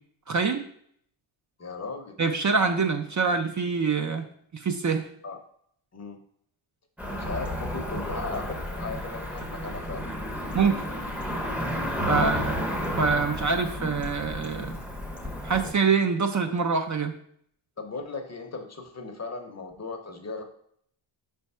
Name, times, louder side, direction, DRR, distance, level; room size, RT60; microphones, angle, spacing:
voice 1, 0.3-0.6 2.2-4.3 4.5-5.0 10.5-10.8 12.1-12.5 13.0-14.8 15.4-17.1, right 5 dB, 40° right, 6 dB, 0.5 m, -25 dB
voice 2, 1.6-2.2 5.2-5.4 5.9-6.2 7.2-10.0 12.0-12.3 17.8-20.4, left 3 dB, 35° left, 5 dB, 0.7 m, -37 dB
Cricket / Motor vehicle (road), 7.0-15.7, equal, 5° right, 0.7 m, -32 dB
5.1 x 3.4 x 5.5 m, 0.65 s
wide cardioid pair, 140°, 49 cm